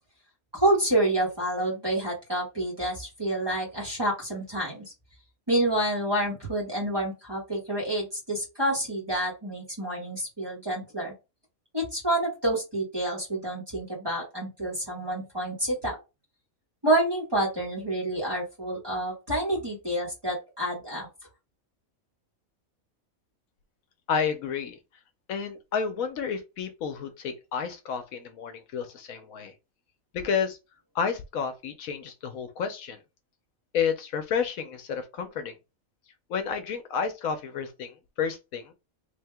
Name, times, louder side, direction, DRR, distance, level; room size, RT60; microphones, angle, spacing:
voice 1, 0.5-4.8 5.5-11.1 11.7-16.0 16.8-21.1, right 1 dB, 20° right, 1.5 m, -28 dB
voice 2, 24.1-24.8 25.3-29.5 30.1-30.6 30.9-33.0 33.7-35.6 36.3-38.7, left 6 dB, 75° left, 1.1 m, -30 dB
3.5 x 2.8 x 3.4 m
omnidirectional pair, 1.5 m